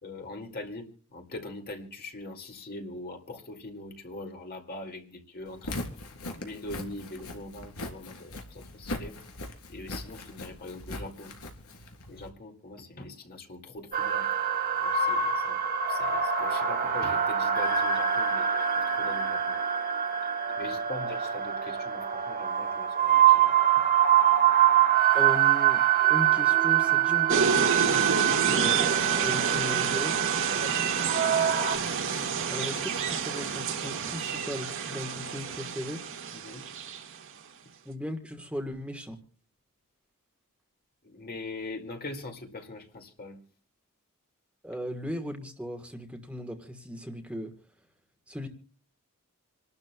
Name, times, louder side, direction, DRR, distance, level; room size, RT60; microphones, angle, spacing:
voice 1, 0.0-6.0 6.4-9.2 9.7-11.3 12.1-14.3 14.8-15.6 15.9-19.6 20.5-23.6 30.6-30.9 36.3-36.6 41.0-43.4, left 2 dB, 45° left, 2.4 m, -42 dB
Walk footsteps, 5.5-12.3, left 2 dB, 90° left, 3.2 m, -40 dB
sound 1, 13.9-31.8, right 9 dB, 40° right, 1.4 m, -25 dB
voice 2, 25.1-25.8 26.1-30.2 32.0-36.0 37.8-39.2 44.6-47.5 48.3-48.5, equal, 5° right, 1.4 m, -37 dB
sound 2, 27.3-37.1, right 6 dB, 65° right, 1.8 m, -29 dB
27.5 x 12.5 x 2.3 m
head